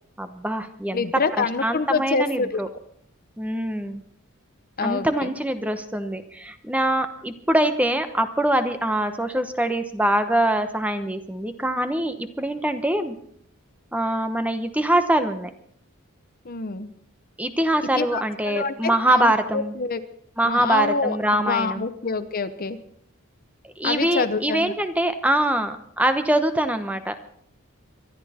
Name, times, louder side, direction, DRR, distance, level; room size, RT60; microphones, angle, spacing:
voice 1, 0.2-1.0 1.4-2.7 3.4-4.0 4.8-13.2 13.9-15.5 17.4-19.7 20.4-21.8 23.6-27.1, right 1 dB, 5° right, 8 dB, 0.9 m, -23 dB
voice 2, 0.9-2.6 4.8-5.3 16.4-16.9 18.0-20.0 20.4-22.8 23.8-24.7, left 4 dB, 45° left, 11 dB, 0.9 m, -26 dB
24.5 x 11.5 x 4.3 m, 0.62 s
head